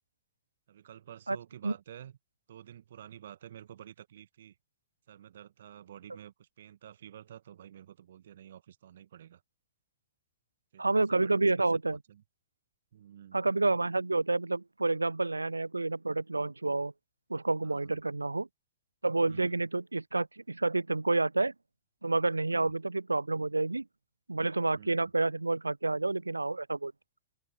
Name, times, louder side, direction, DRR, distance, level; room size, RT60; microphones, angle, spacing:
voice 1, 0.7-2.1 2.5-4.5 5.1-9.4 10.7-12.2 12.9-13.4 17.6-18.0 19.3-19.6 22.4-22.8 24.7-25.1, right 10 dB, 60° right, 1.3 m, -50 dB
voice 2, 10.8-12.0 13.3-16.9 17.3-18.5 19.0-21.5 22.0-23.9 24.3-26.9, right 2 dB, 80° right, 0.4 m, -29 dB
open air
figure-of-eight pair, 90°, 0 cm